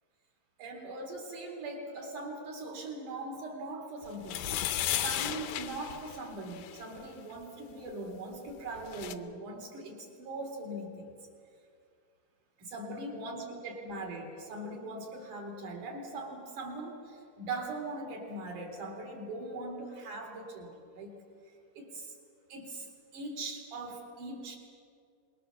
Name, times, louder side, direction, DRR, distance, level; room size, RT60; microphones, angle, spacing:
voice 1, 0.6-4.6 5.0-11.1 12.6-21.2 21.7-22.2 22.5-24.6, right 2 dB, 60° right, 1 dB, 4.8 m, -41 dB
sound 1, 4.2-6.8 8.5-8.6 8.8-9.2, left 12 dB, 85° left, 2.5 m, -34 dB
25.5 x 21.5 x 7.1 m, 2.3 s
omnidirectional pair, 4.0 m